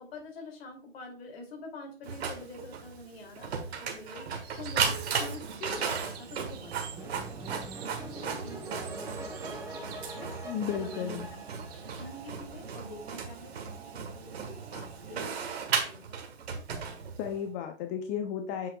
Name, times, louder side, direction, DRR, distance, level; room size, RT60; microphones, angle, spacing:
voice 1, 0.0-7.4 8.1-16.2, left 2 dB, 60° left, 3 dB, 2.8 m, -46 dB
Printer, 2.0-17.4, right 6 dB, 65° right, 1.5 m, -36 dB
sound 1, 4.4-12.0, right 8 dB, 30° right, 1.2 m, -50 dB
sound 2, 7.0-12.4, right 1 dB, 10° right, 1.3 m, -43 dB
voice 2, 10.4-11.2 17.2-18.7, left 8 dB, 30° left, 6 dB, 0.6 m, -33 dB
7.7 x 6.0 x 2.3 m, 0.39 s
hypercardioid pair, 115°, 34 cm